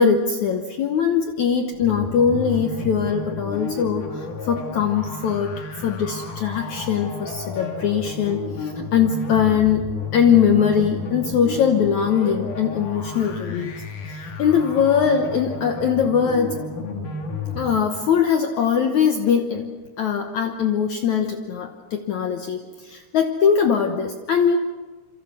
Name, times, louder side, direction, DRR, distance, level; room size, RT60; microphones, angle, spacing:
voice 1, 0.0-5.5 5.8-13.7 14.1-16.6 17.6-19.6 20.0-24.6, left 7 dB, 70° left, 5 dB, 1.8 m, -21 dB
sound 1, 1.7-17.7, left 4 dB, 55° left, 3.9 m, -32 dB
27.5 x 24.5 x 6.1 m, 1.4 s
omnidirectional pair, 4.7 m